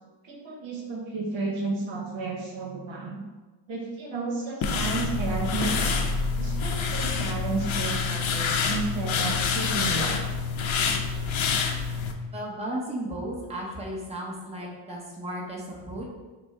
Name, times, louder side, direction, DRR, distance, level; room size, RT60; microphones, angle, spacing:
voice 1, 0.2-3.2 3.7-6.0 6.4-10.3, right 3 dB, 65° right, 0 dB, 1.0 m, -32 dB
sound 1, 4.6-12.1, left 5 dB, 65° left, 0.6 m, -27 dB
voice 2, 12.3-16.1, right 1 dB, 15° right, -4 dB, 0.9 m, -34 dB
5.9 x 2.2 x 3.7 m, 1.2 s
cardioid pair, 105°, 50 cm